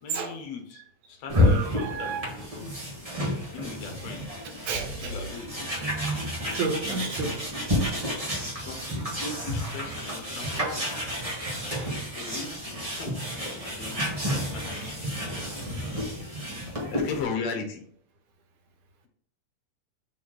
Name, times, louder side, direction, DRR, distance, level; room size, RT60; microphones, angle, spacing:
voice 1, 0.0-2.7 3.5-4.4 5.0-5.7 8.6-10.9 12.2-13.2 13.6-14.0 14.2-16.0 16.9-17.8, left 5 dB, 65° left, 3 dB, 2.0 m, -38 dB
sound 1, 1.3-17.2, left 1 dB, 35° right, 0.5 m, -30 dB
voice 2, 1.3-2.3 2.5-2.8 4.7-5.2 6.5-7.5 11.4-11.9 13.6-13.7 15.3-15.8, right 4 dB, 80° right, 3 dB, 2.6 m, -33 dB
5.4 x 4.2 x 4.6 m, 0.64 s
omnidirectional pair, 3.6 m